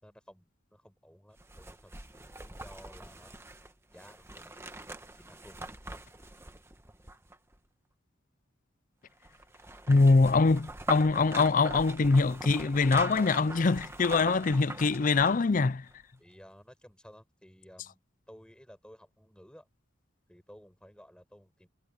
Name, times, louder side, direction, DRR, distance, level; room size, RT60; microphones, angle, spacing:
voice 1, 0.0-1.9 2.4-3.4 3.9-4.5 4.9-5.6 16.2-19.7 20.3-21.7, equal, 5° left, 4.7 m, -55 dB
sound 1, 1.4-7.6 9.2-15.5 15.9-16.0, right 2 dB, 10° right, 1.2 m, -42 dB
voice 2, 9.9-15.9, left 3 dB, 40° left, 0.5 m, -24 dB
head